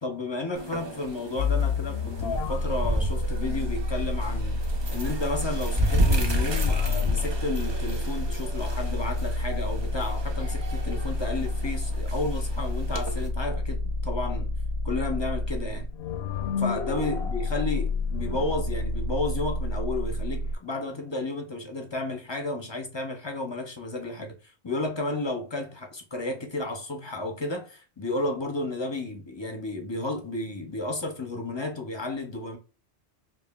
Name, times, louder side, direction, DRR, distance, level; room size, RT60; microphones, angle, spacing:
voice 1, 0.0-4.6 4.9-14.5 14.8-15.9 16.6-24.4 24.6-32.6, left 2 dB, 30° left, 0.6 m, -32 dB
sound 1, 0.6-13.3, equal, 35° right, 0.5 m, -32 dB
sound 2, 1.4-20.6, left 2 dB, 70° left, 0.8 m, -29 dB
5.4 x 2.4 x 2.3 m
omnidirectional pair, 1.2 m